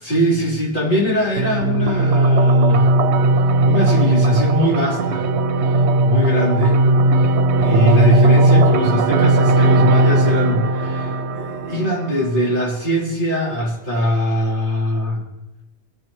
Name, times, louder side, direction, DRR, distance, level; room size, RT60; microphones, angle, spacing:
voice 1, 0.0-2.9 3.6-5.2 5.6-6.8 7.1-15.2, equal, 50° left, -6 dB, 3.6 m, -22 dB
sound 1, 1.4-12.4, right 2 dB, 80° right, 0.9 m, -16 dB
21.5 x 9.4 x 3.0 m, 1.0 s
omnidirectional pair, 1.1 m